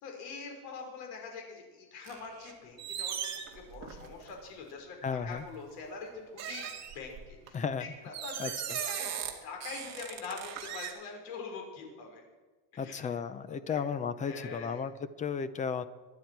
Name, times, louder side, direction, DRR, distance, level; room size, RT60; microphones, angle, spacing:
voice 1, 0.0-6.1 6.5-6.7 6.9-9.1 9.4-12.2 12.7-13.8 14.2-14.8, left 4 dB, 75° left, 2 dB, 4.8 m, -44 dB
sound 1, 2.1-2.5 2.8-4.3 5.1-5.3 6.4-7.5 8.1-9.3 9.6-10.9, right 9 dB, 35° right, 2.3 m, -38 dB
voice 2, 5.0-5.4 7.5-7.8 8.4-8.8 12.8-14.9 15.2-15.9, left 6 dB, 15° left, 14 dB, 0.4 m, -34 dB
24.0 x 10.5 x 4.6 m, 1.3 s
cardioid pair, 155°, 46 cm